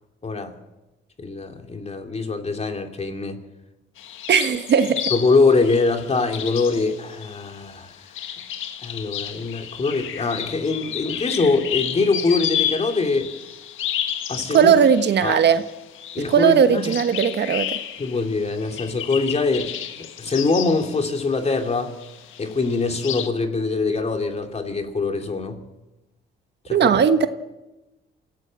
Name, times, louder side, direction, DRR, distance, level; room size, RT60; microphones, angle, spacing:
voice 1, 0.2-0.5 1.2-3.4 5.1-7.9 8.8-13.3 14.3-14.8 15.2-15.4 16.1-16.9 18.0-21.9 22.4-25.6 26.6-27.0, left 3 dB, 35° left, 2.8 m, -23 dB
sound 1, 4.0-21.7 22.0-23.3, left 10 dB, 80° left, 1.6 m, -32 dB
voice 2, 4.3-5.1 14.5-15.6 16.3-17.8 26.7-27.3, right 7 dB, 60° right, 1.3 m, -17 dB
25.5 x 16.0 x 7.6 m
cardioid pair, 90°, 20 cm